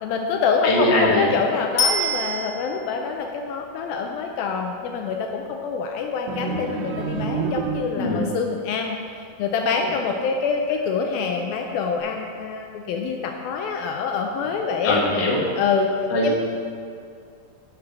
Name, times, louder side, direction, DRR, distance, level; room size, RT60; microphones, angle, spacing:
voice 1, 0.0-15.0 15.6-15.9 16.2-16.3, left 5 dB, 80° left, 2 dB, 2.4 m, -25 dB
voice 2, 0.6-1.3 8.0-8.3 14.8-15.4 16.1-16.3, left 1 dB, 35° left, -4 dB, 2.1 m, -21 dB
Bicycle bell, 1.8-2.9 12.0-12.1, left 1 dB, 55° left, 3.1 m, -25 dB
sound 1, 6.3-8.3, right 5 dB, 75° right, 2.2 m, -28 dB
13.0 x 6.5 x 6.1 m, 2.3 s
omnidirectional pair, 4.4 m